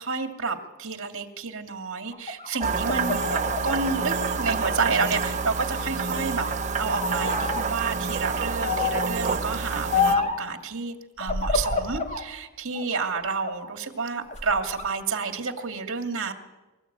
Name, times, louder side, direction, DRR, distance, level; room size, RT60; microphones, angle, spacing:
voice 1, 0.0-6.5 6.8-16.3, right 4 dB, 60° right, 4 dB, 2.4 m, -30 dB
sound 1, 2.1-5.3 5.7-6.6 7.0-7.6 8.6-9.2 9.9-10.5 11.2-12.3 12.7-13.7 14.2-14.9, left 5 dB, 30° left, 2.0 m, -29 dB
sound 2, 2.6-10.2, right 5 dB, 35° right, 1.2 m, -28 dB
25.5 x 14.0 x 8.9 m, 1.1 s
head